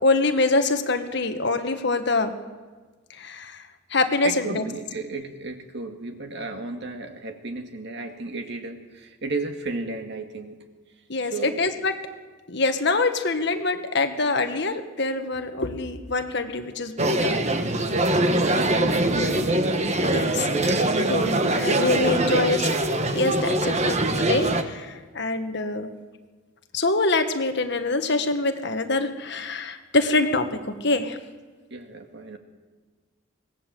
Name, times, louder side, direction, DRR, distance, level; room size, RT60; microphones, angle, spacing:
voice 1, 0.0-2.3 3.1-4.7 11.1-11.9 12.5-17.4 20.1-20.8 21.1-22.6 23.1-25.9 26.7-31.2, left 3 dB, 55° left, 7 dB, 1.6 m, -25 dB
voice 2, 4.2-10.6 11.3-11.6 18.2-20.2 20.5-22.6 31.7-32.4, right 3 dB, 55° right, 5 dB, 2.2 m, -34 dB
sound 1, 17.0-24.6, right 1 dB, 35° right, 1.3 m, -23 dB
25.0 x 19.0 x 7.7 m, 1.4 s
head